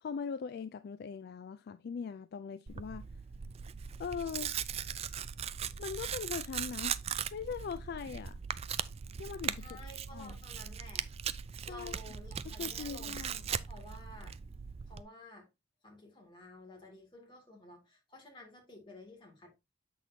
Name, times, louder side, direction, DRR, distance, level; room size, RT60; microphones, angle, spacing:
voice 1, 0.0-3.1 4.0-4.5 5.8-7.0 7.3-8.4 9.2-9.8 10.1-10.4 11.7-11.9 12.4-13.5, left 6 dB, 55° left, 0.3 m, -40 dB
Tearing, 2.7-15.0, right 8 dB, 30° right, 0.3 m, -39 dB
voice 2, 9.6-11.1 11.7-14.4 14.8-15.5 15.8-19.5, left 2 dB, 25° left, 2.5 m, -52 dB
7.3 x 6.1 x 2.7 m
head